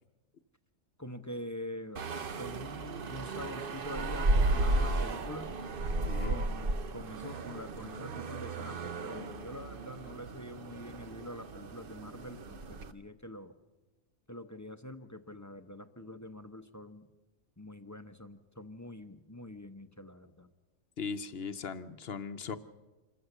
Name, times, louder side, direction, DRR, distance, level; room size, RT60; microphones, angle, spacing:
voice 1, 1.0-5.5 6.2-13.5 14.3-17.1 17.6-20.5, left 1 dB, 15° left, 8 dB, 0.8 m, -45 dB
sound 1, 2.0-12.9, right 2 dB, 50° right, 1.0 m, -34 dB
voice 2, 6.0-6.4 21.0-22.6, left 5 dB, 55° left, 11 dB, 1.0 m, -38 dB
27.0 x 14.5 x 6.8 m, 1.2 s
omnidirectional pair, 1.3 m